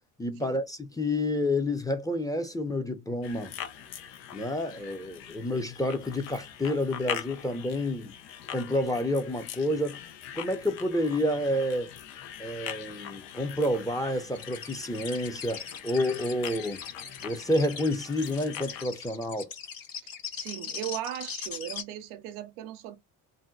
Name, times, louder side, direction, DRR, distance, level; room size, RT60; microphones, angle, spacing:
voice 1, 0.2-3.5 4.3-8.2 8.5-10.0 10.3-11.9 12.4-16.8 17.2-19.5, left 1 dB, 10° left, 0.6 m, -29 dB
sound 1, 3.2-18.9, left 10 dB, 85° left, 0.7 m, -42 dB
sound 2, 14.3-21.8, left 6 dB, 45° left, 1.0 m, -40 dB
voice 2, 20.3-23.0, right 12 dB, 90° right, 0.7 m, -37 dB
2.7 x 2.1 x 3.7 m
supercardioid pair, 80°, 48 cm